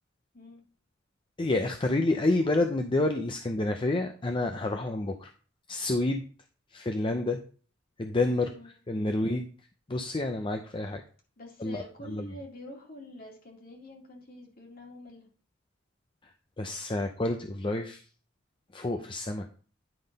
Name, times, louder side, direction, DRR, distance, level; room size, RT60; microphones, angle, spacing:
voice 1, 1.4-5.3 5.7-6.2 6.7-7.4 8.0-9.5 9.9-11.0 11.6-11.8 12.1-12.3 16.6-18.0 18.7-19.5, left 2 dB, 25° left, 5 dB, 0.6 m, -29 dB
voice 2, 8.5-9.3 11.4-15.3, left 1 dB, 50° left, 0 dB, 2.2 m, -47 dB
10.0 x 3.7 x 5.2 m, 0.40 s
head